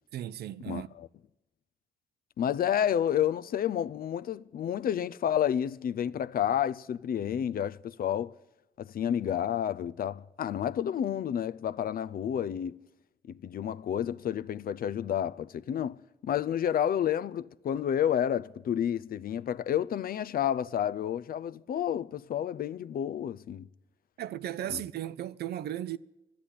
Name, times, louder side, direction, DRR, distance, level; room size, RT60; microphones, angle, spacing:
voice 1, 0.1-0.9 24.2-26.0, right 12 dB, 70° right, 0.5 m, -36 dB
voice 2, 2.4-8.3 8.8-12.8 13.3-16.0 16.2-23.7 24.7-24.8, left 9 dB, 60° left, 0.5 m, -30 dB
12.5 x 10.5 x 9.9 m
supercardioid pair, 50°, 17 cm